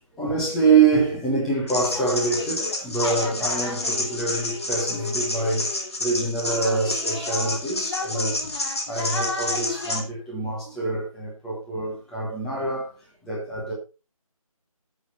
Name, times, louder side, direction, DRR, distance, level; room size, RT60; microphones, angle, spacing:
voice 1, 0.2-8.5 8.9-12.9 13.2-13.7, right 4 dB, ahead, 1.0 m, -25 dB
sound 1, 1.7-10.0, left 2 dB, 45° left, 2.7 m, -28 dB
15.5 x 6.7 x 4.2 m
figure-of-eight pair, 165°, 19 cm